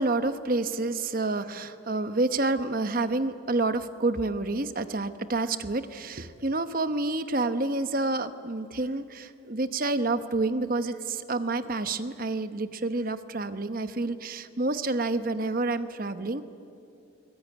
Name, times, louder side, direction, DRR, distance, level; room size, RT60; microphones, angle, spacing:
voice 1, 0.0-16.4, right 2 dB, 45° right, 11 dB, 1.0 m, -28 dB
21.5 x 20.5 x 9.8 m, 2.6 s
head